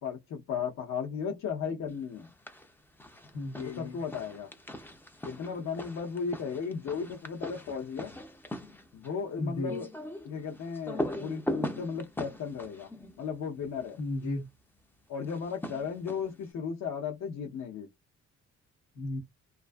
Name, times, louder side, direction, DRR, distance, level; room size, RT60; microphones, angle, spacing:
voice 1, 0.0-2.3 3.8-4.5 5.2-8.1 8.9-9.9 10.2-12.9 13.2-14.0 15.1-17.9, left 6 dB, 65° left, 0.7 m, -35 dB
sound 1, 2.2-2.7 3.0-14.0 15.2-16.5, left 1 dB, 5° left, 0.4 m, -40 dB
voice 2, 3.3-4.0 9.4-9.7 14.0-14.4 19.0-19.2, left 2 dB, 85° left, 1.0 m, -34 dB
2.4 x 2.4 x 2.2 m
cardioid pair, 90°, 30 cm